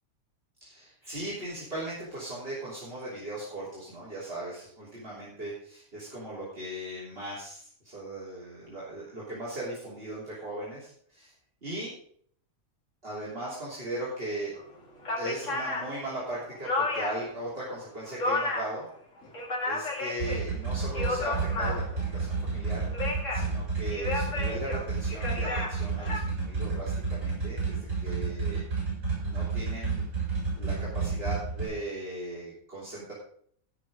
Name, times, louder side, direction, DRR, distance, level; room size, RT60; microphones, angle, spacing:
voice 1, 0.6-11.3 11.6-11.9 13.0-14.5 15.2-18.9 19.7-28.6 29.2-30.1 30.6-33.1, right 1 dB, 40° right, -8 dB, 3.8 m, -38 dB
sound 1, 14.6-14.7 15.0-17.3 17.7-18.8 19.2-20.4 20.8-22.1 22.7-23.5 23.9-26.2, left 2 dB, 60° left, 2.7 m, -32 dB
sound 2, 20.2-31.7, right 4 dB, 65° right, 7.3 m, -31 dB
16.0 x 6.4 x 5.2 m, 0.62 s
omnidirectional pair, 1.5 m